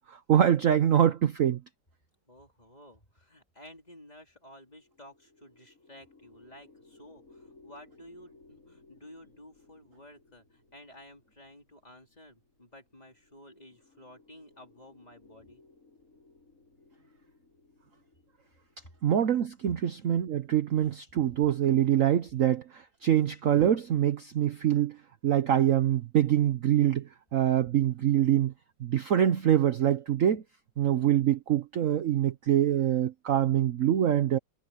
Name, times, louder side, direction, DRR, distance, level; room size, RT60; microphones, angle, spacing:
voice 1, 0.0-1.6 19.0-28.5 28.8-30.4 30.8-34.4, right 10 dB, 55° right, 1.0 m, -25 dB
voice 2, 2.3-15.6, left 1 dB, 20° left, 3.8 m, -53 dB
sound 1, 4.4-21.9, left 3 dB, 45° left, 8.5 m, -61 dB
omnidirectional pair, 1.9 m